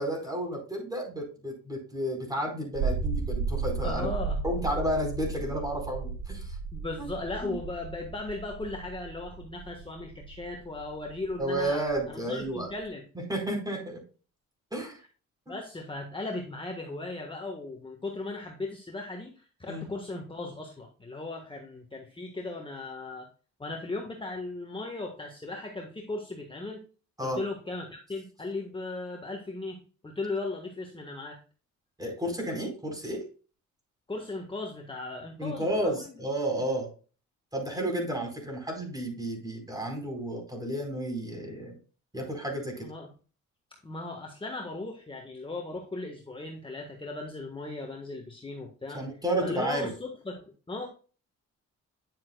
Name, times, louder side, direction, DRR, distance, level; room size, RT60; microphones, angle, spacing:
voice 1, 0.0-4.1 4.4-6.6 7.0-7.1 7.4-7.5 11.4-12.7 13.3-14.0 14.7-15.0 15.5-15.6 19.7-19.8 27.2-27.4 32.0-33.2 35.4-36.9 37.5-41.8 42.1-42.9 48.9-49.9, right 1 dB, 10° right, 1 dB, 4.6 m, -32 dB
sound 1, 2.7-12.9, right 4 dB, 65° right, 2.0 m, -35 dB
voice 2, 3.8-4.4 6.7-13.0 15.5-23.3 23.6-26.8 27.2-31.4 34.1-36.1 42.8-43.1 43.8-49.0 49.4-50.9, left 2 dB, 15° left, 1 dB, 1.5 m, -37 dB
10.0 x 7.3 x 2.3 m, 0.37 s
cardioid pair, 90°, 30 cm